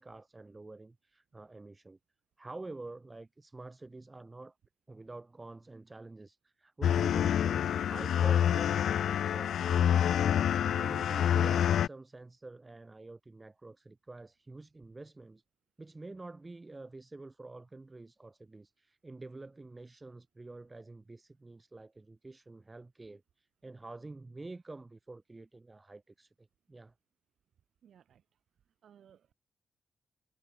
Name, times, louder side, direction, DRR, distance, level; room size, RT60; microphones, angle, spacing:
voice 1, 0.0-2.0 2.4-4.5 4.9-15.4 15.8-26.9, right 2 dB, 20° right, 2.5 m, -48 dB
sound 1, 6.8-11.9, left 9 dB, 85° left, 0.6 m, -27 dB
voice 2, 27.8-28.2 28.8-29.3, right 9 dB, 75° right, 6.0 m, -60 dB
open air
wide cardioid pair, 130°, 0 cm